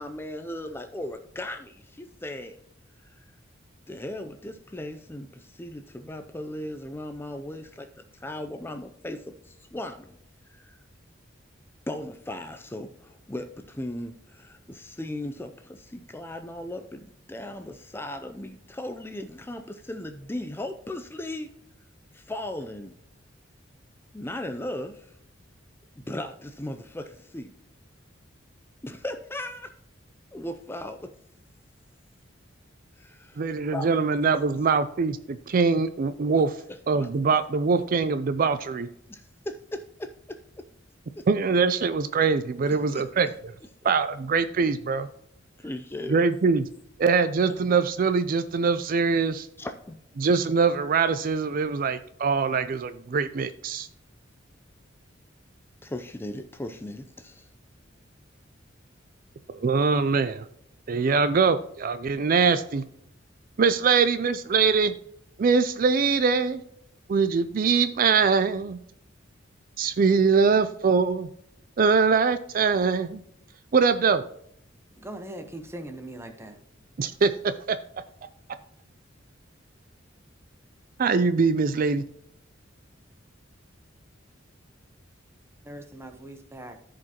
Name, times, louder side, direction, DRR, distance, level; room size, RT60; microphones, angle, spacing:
voice 1, 0.0-2.6 3.0-3.2 3.9-10.1 10.5-10.8 11.9-21.5 22.1-22.9 24.1-25.2 26.0-27.5 28.8-29.7 30.3-31.1 33.0-33.4 33.7-33.9 36.3-36.4 36.9-37.1 39.1-40.6 41.2-41.3 42.6-43.0 43.8-43.9 45.6-46.2 47.5-47.6 49.6-50.0 55.8-57.5, left 1 dB, 10° left, 7 dB, 0.4 m, -37 dB
voice 2, 33.4-36.5 36.9-38.9 41.3-43.5 43.8-45.1 46.1-46.7 47.0-49.5 50.2-53.9 59.5-60.5 60.9-62.8 63.6-64.9 65.4-66.6 67.1-68.8 69.8-71.3 71.8-73.2 73.7-74.2 77.0-77.8 81.0-82.0, right 5 dB, 45° right, 12 dB, 0.4 m, -23 dB
voice 3, 75.0-76.6 85.6-86.8, right 1 dB, 15° right, 7 dB, 1.0 m, -40 dB
14.5 x 5.1 x 2.9 m, 0.73 s
head